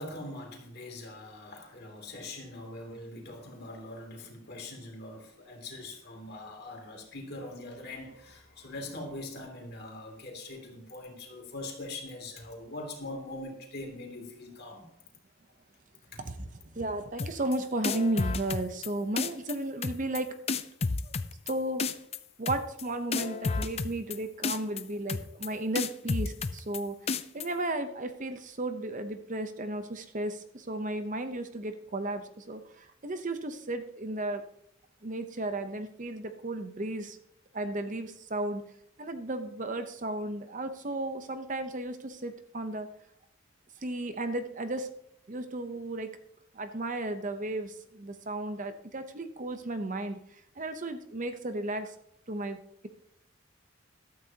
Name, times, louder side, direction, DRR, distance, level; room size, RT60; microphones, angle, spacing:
voice 1, 0.0-14.8 16.0-16.2, left 2 dB, 50° left, 1 dB, 2.8 m, -42 dB
voice 2, 16.2-20.3 21.0-21.1 21.5-21.8 22.4-27.0 27.3-34.4 35.0-37.2 37.5-38.6 39.0-42.9 43.8-44.9 45.3-46.1 46.5-50.2 50.6-51.9 52.3-52.9, right 2 dB, 40° right, 8 dB, 0.8 m, -34 dB
sound 1, 17.2-17.6 17.8-18.9 19.2-19.5 19.8-20.2 20.5-21.5 21.8-22.2 22.5-22.8 23.1-24.2 24.4-24.8 25.1-25.5 25.8-26.8 27.1-27.5, left 4 dB, 30° left, 0.5 m, -30 dB
14.5 x 12.5 x 2.9 m, 0.76 s
head